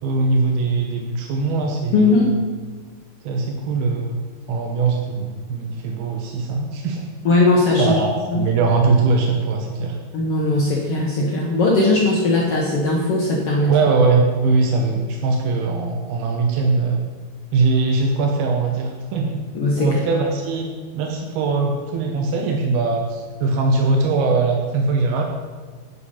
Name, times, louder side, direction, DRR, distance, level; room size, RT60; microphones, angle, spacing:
voice 1, 0.0-2.3 3.2-4.2 4.5-7.1 7.8-10.0 13.7-17.0 17.5-19.4 19.8-20.7 20.9-25.2, right 3 dB, 80° right, 2 dB, 2.9 m, -21 dB
voice 2, 1.9-2.3 7.2-8.0 8.3-8.4 10.1-13.7 19.5-20.0, left 2 dB, 70° left, -3 dB, 1.4 m, -18 dB
9.8 x 6.9 x 5.6 m, 1.5 s
omnidirectional pair, 4.4 m